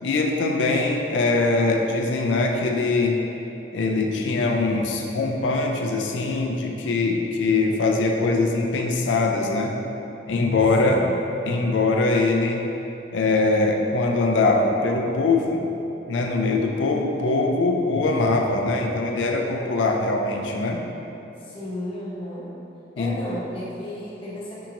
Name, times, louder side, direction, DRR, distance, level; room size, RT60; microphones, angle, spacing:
voice 1, 0.0-3.2 3.7-9.8 10.3-11.0 11.5-12.7 13.1-15.7 16.1-20.8 23.0-23.2, left 3 dB, 85° left, 2 dB, 0.4 m, -22 dB
voice 2, 10.8-11.3 21.4-22.5 23.0-24.7, left 1 dB, 30° left, -7 dB, 0.7 m, -34 dB
5.6 x 2.9 x 2.5 m, 3.0 s
head